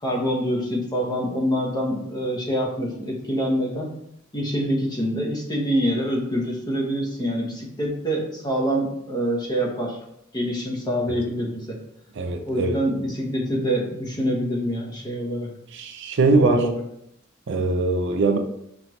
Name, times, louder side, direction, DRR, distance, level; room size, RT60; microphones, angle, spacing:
voice 1, 0.0-3.9 4.3-10.0 10.3-11.8 12.4-15.5 16.4-16.7, equal, 20° left, -1 dB, 0.9 m, -25 dB
voice 2, 12.2-12.7 15.7-16.7 17.5-18.4, right 3 dB, 60° right, 5 dB, 0.5 m, -21 dB
5.7 x 3.0 x 3.1 m, 0.75 s
head